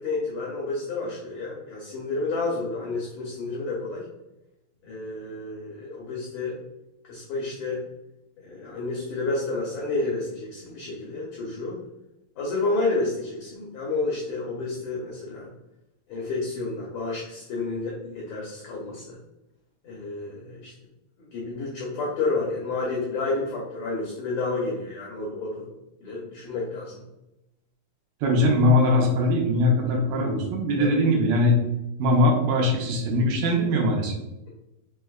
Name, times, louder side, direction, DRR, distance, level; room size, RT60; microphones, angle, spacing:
voice 1, 0.0-4.1 4.8-6.5 7.0-7.8 8.4-11.8 12.4-15.5 16.1-19.2 19.8-20.7 21.2-25.7 26.0-27.0 30.8-31.0, left 3 dB, 85° left, -3 dB, 1.5 m, -30 dB
voice 2, 28.2-31.6 32.0-34.1, left 1 dB, 75° right, 0 dB, 2.3 m, -21 dB
5.5 x 3.3 x 2.3 m, 0.92 s
omnidirectional pair, 4.2 m